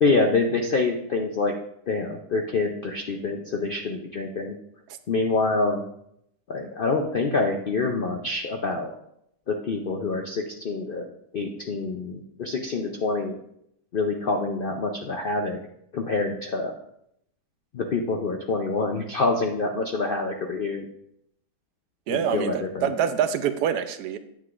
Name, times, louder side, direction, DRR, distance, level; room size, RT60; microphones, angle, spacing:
voice 1, 0.0-1.5 1.9-4.5 5.1-5.8 6.5-8.9 9.5-11.1 11.3-13.3 13.9-15.6 15.9-16.7 17.7-20.8 22.1-22.9, left 3 dB, 70° left, 3 dB, 0.5 m, -26 dB
voice 2, 22.1-24.2, right 8 dB, 85° right, 10 dB, 1.2 m, -25 dB
9.0 x 7.6 x 2.4 m, 0.75 s
omnidirectional pair, 1.7 m